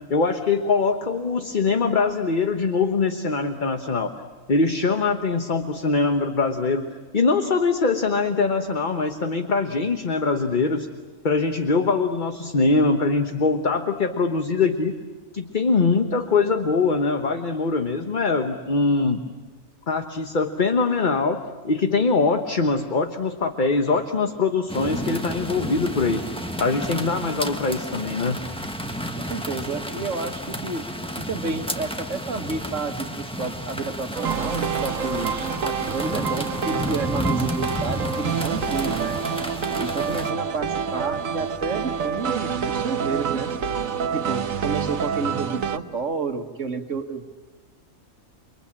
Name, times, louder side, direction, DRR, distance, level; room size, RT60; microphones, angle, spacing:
voice 1, 0.1-4.1 4.5-6.9 7.1-10.9 11.2-15.0 15.3-19.2 19.9-26.2 26.6-28.4, left 4 dB, 40° left, 6 dB, 1.2 m, -22 dB
sound 1, 24.7-40.3, equal, 5° left, 1.4 m, -31 dB
voice 2, 29.2-30.9 31.2-39.2 39.7-43.5 44.1-47.3, right 4 dB, 70° right, 6 dB, 1.9 m, -30 dB
sound 2, 34.1-45.8, right 6 dB, 90° right, 1.5 m, -27 dB
29.5 x 23.0 x 8.8 m, 1.3 s
omnidirectional pair, 1.3 m